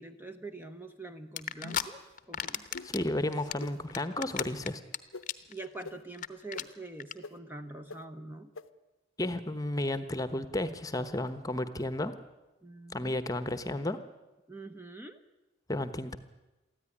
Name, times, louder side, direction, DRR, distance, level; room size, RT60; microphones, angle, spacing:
voice 1, 0.0-2.6 5.5-8.5 12.6-13.2 14.5-15.2, right 2 dB, 10° right, 7 dB, 0.9 m, -45 dB
sound 1, 1.4-1.8 2.2-3.0 3.3-5.0 5.2-5.5 5.8-5.9 6.1-6.3 6.5-6.6 7.0-7.1, left 9 dB, 40° left, 0.9 m, -34 dB
sound 2, 1.6-2.0 2.7-2.9 3.6-3.7 4.4-4.5 5.1-5.2 5.8-5.9 6.5-6.6 7.2-7.3 7.9-8.0 8.5-8.6, left 3 dB, 85° left, 0.9 m, -42 dB
voice 2, 2.8-4.8 9.2-12.1 12.9-14.0 15.7-16.2, left 1 dB, 15° left, 12 dB, 1.0 m, -32 dB
23.5 x 14.5 x 10.0 m, 1.1 s
head